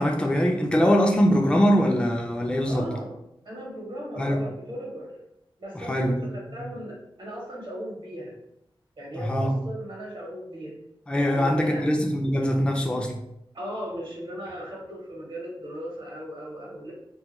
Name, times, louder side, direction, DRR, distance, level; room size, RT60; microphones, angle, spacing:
voice 1, 0.0-2.9 4.2-4.4 5.7-6.2 6.5-6.7 9.2-9.6 11.1-13.2, equal, 10° left, 1 dB, 0.3 m, -23 dB
voice 2, 2.7-3.1 3.4-5.1 5.6-8.3 9.0-10.8 11.2-11.8 13.5-16.9, equal, 60° right, -3 dB, 0.8 m, -37 dB
2.2 x 2.2 x 2.9 m, 0.81 s
wide cardioid pair, 90°, 9 cm